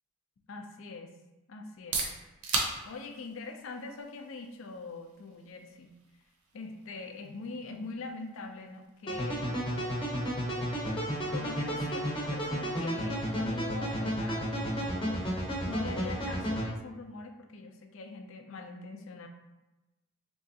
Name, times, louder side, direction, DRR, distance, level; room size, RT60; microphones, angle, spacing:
voice 1, 0.5-1.2 1.5-2.1 2.8-5.9 6.5-9.5 10.6-10.9 11.3-15.3 15.7-19.3, left 3 dB, 60° left, 4 dB, 0.4 m, -43 dB
sound 1, 1.6-17.3, right 4 dB, 85° right, 0.6 m, -43 dB
sound 2, 9.1-16.7, equal, 20° left, 0.7 m, -32 dB
3.5 x 3.0 x 2.7 m, 1.1 s
head